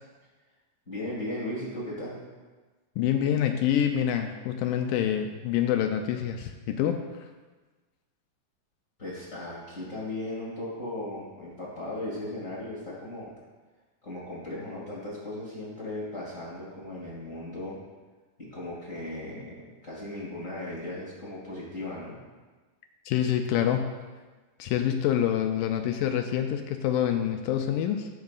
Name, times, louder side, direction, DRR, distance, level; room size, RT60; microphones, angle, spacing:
voice 1, 0.9-2.2 9.0-13.3 14.0-17.8 18.5-19.5 19.8-22.2, left 1 dB, 25° left, -7 dB, 2.0 m, -37 dB
voice 2, 3.0-7.3 23.1-23.9 24.6-28.1, left 10 dB, 85° left, 5 dB, 2.2 m, -26 dB
15.5 x 7.6 x 2.4 m, 1.3 s
omnidirectional pair, 3.9 m